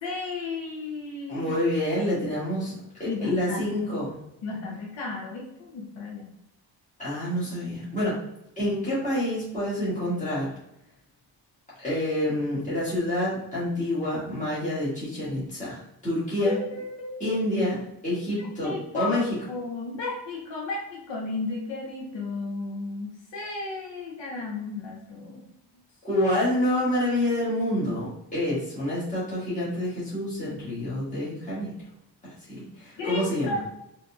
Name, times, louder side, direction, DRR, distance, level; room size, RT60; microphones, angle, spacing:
voice 1, 0.0-1.5 3.1-3.6 4.4-6.3 16.4-17.5 18.4-19.2 19.5-25.5 33.0-33.6, left 3 dB, 75° left, -2 dB, 0.7 m, -34 dB
voice 2, 1.3-2.7 3.0-4.2 7.0-8.2 8.6-10.5 11.8-16.6 17.2-19.2 26.0-31.7 32.2-33.5, left 1 dB, 15° left, -10 dB, 1.5 m, -27 dB
3.8 x 2.7 x 2.3 m, 0.83 s
wide cardioid pair, 175°, 46 cm